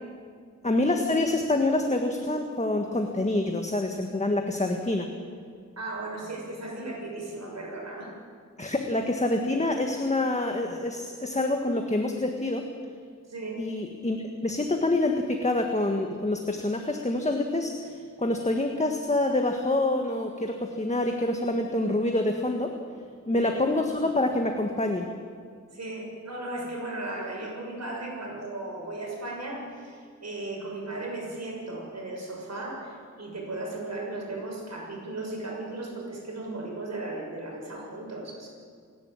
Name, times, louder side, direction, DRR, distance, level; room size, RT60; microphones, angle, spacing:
voice 1, 0.6-5.1 8.6-12.6 13.6-14.2 14.4-22.7 23.3-25.1, left 2 dB, 25° left, 3 dB, 1.6 m, -26 dB
voice 2, 5.8-8.1 13.3-13.6 23.3-23.5 25.7-38.5, right 2 dB, 60° right, -2 dB, 6.7 m, -36 dB
29.5 x 11.5 x 8.8 m, 2.1 s
wide cardioid pair, 90°, 29 cm